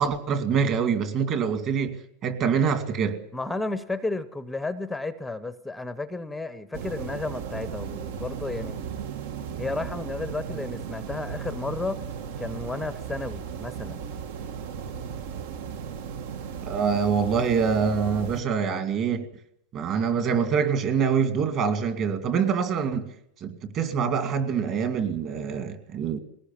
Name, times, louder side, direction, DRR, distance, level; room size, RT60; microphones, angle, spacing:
voice 1, 0.0-3.2 16.6-19.3 19.7-23.1 23.4-26.2, right 6 dB, 35° right, 2.2 m, -25 dB
voice 2, 3.3-9.0 9.6-12.0 12.4-14.0, left 2 dB, 5° left, 0.7 m, -32 dB
sound 1, 6.7-18.4, right 7 dB, 70° right, 1.6 m, -36 dB
21.5 x 18.5 x 7.2 m
supercardioid pair, 165°, 0 cm